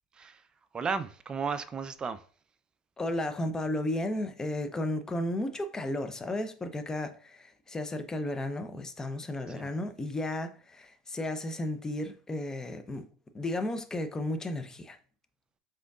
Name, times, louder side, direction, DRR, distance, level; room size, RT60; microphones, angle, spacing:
voice 1, 0.1-0.5 0.7-2.3 9.5-9.7, right 5 dB, 25° right, 0.4 m, -34 dB
voice 2, 3.0-13.0 13.3-15.0, left 1 dB, 15° left, 0.6 m, -33 dB
5.1 x 3.7 x 2.4 m
hypercardioid pair, 85°, 3 cm